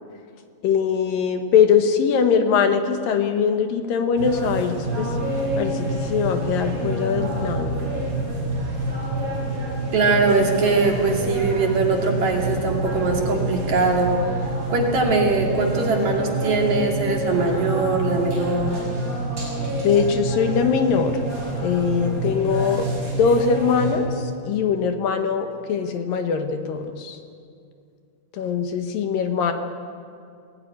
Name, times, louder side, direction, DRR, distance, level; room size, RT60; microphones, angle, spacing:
voice 1, 0.6-5.1 5.6-7.8 19.8-21.2 21.6-22.9 23.2-27.2 28.3-29.5, left 6 dB, 70° left, 7 dB, 2.8 m, -21 dB
sound 1, 4.2-24.0, right 1 dB, 35° right, 7.0 m, -27 dB
voice 2, 9.9-18.8, right 3 dB, 50° right, 1 dB, 3.5 m, -21 dB
21.5 x 17.5 x 9.9 m, 2.4 s
omnidirectional pair, 4.4 m